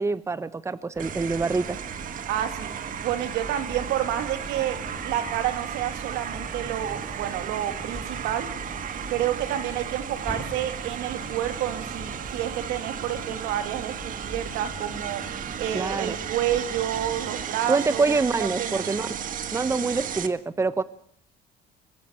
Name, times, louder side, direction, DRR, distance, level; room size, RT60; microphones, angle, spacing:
voice 1, 0.0-1.8 15.7-16.2 17.7-19.1 19.5-20.8, right 3 dB, 15° right, 14 dB, 0.9 m, -25 dB
sound 1, 0.9-17.5, left 2 dB, 10° left, 3.3 m, -42 dB
sound 2, 1.0-20.3, right 9 dB, 55° right, 1.5 m, -35 dB
voice 2, 2.3-2.7 3.0-4.8 5.0-8.5 9.1-15.2 15.6-18.8, right 11 dB, 90° right, 8 dB, 2.5 m, -29 dB
23.5 x 12.5 x 8.9 m, 0.65 s
cardioid pair, 110°, 17 cm